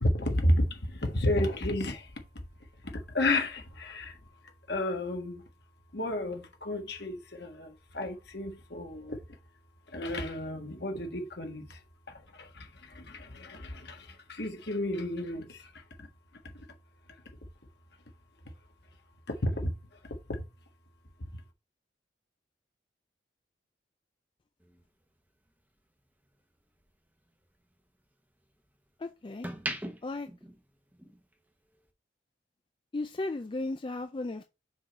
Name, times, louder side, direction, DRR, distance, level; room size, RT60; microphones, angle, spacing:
voice 1, 0.0-2.1 3.1-4.1 4.7-5.4 5.9-9.2 9.9-11.7 12.4-12.7 12.9-15.6 19.4-19.7, left 1 dB, 60° left, 1.5 m, -31 dB
sound 1, 24.6-26.9 27.3-28.8 29.2-31.3 31.6-31.9, right 1 dB, 10° right, 0.9 m, -41 dB
voice 2, 29.0-29.5 30.0-30.3 32.9-34.4, left 2 dB, 25° left, 0.4 m, -35 dB
6.2 x 3.8 x 4.3 m
head